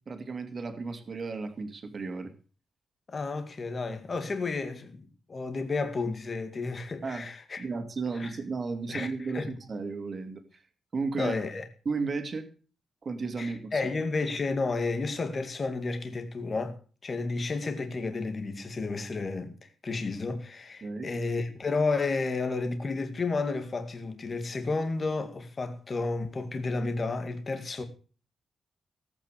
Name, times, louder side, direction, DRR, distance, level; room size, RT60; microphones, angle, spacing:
voice 1, 0.0-2.3 7.0-7.3 7.6-10.6 10.9-11.3 11.8-12.5 13.0-13.8 20.8-21.1, right 4 dB, 35° right, 2.5 m, -34 dB
voice 2, 3.1-7.6 8.2-8.4 8.9-9.5 11.2-11.7 13.4-16.8 17.0-27.8, left 3 dB, 30° left, 2.1 m, -32 dB
18.0 x 8.9 x 6.6 m
wide cardioid pair, 155°, 0 cm